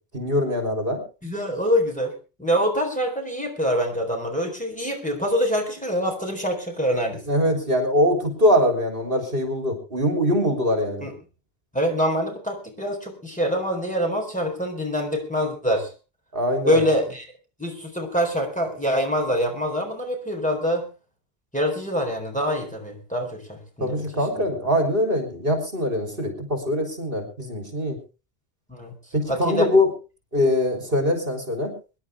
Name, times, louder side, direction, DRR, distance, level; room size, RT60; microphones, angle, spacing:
voice 1, 0.1-1.0 7.3-11.1 16.3-16.8 23.8-28.0 29.1-29.9 30.3-31.7, left 1 dB, 60° right, 4 dB, 3.8 m, -22 dB
voice 2, 1.2-2.1 2.4-7.2 11.0-11.1 11.7-15.9 16.7-17.3 17.6-20.9 21.5-24.0 24.4-24.5 28.7-29.0 29.3-29.7, equal, 5° left, 1 dB, 3.9 m, -25 dB
24.5 x 11.0 x 3.5 m, 0.32 s
omnidirectional pair, 1.0 m